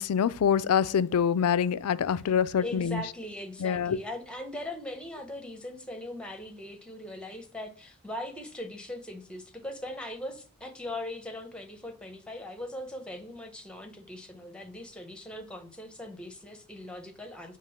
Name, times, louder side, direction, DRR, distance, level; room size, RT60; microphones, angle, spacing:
voice 1, 0.0-3.0 3.6-4.0, left 7 dB, 80° left, 0.4 m, -25 dB
voice 2, 2.6-17.6, left 1 dB, 5° left, 0.9 m, -40 dB
7.4 x 3.4 x 5.6 m
head